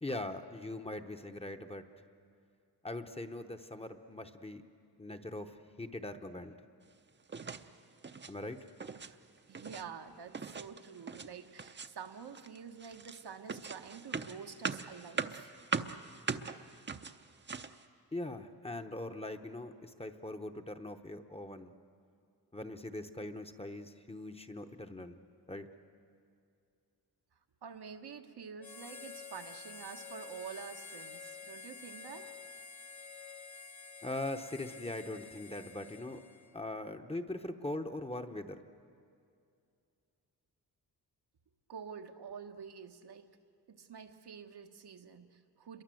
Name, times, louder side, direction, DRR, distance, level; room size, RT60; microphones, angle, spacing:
voice 1, 0.0-1.8 2.8-4.6 5.0-6.5 8.3-8.6 18.1-21.7 22.5-25.2 25.5-25.7 34.0-36.2 36.5-38.6, left 2 dB, 15° left, 6 dB, 0.9 m, -41 dB
sound 1, 7.3-7.7 8.0-8.3 8.7-9.1 9.4-9.8 10.3-11.3 11.6-12.1 12.3-17.8, right 5 dB, 30° right, 0.7 m, -40 dB
voice 2, 9.5-15.6 27.6-32.4 41.7-43.3 43.7-45.8, right 6 dB, 80° right, 5 dB, 1.4 m, -48 dB
Harmonica, 28.6-36.6, left 5 dB, 45° left, 1.0 m, -49 dB
28.0 x 22.5 x 7.7 m, 2.4 s
wide cardioid pair, 150°, 39 cm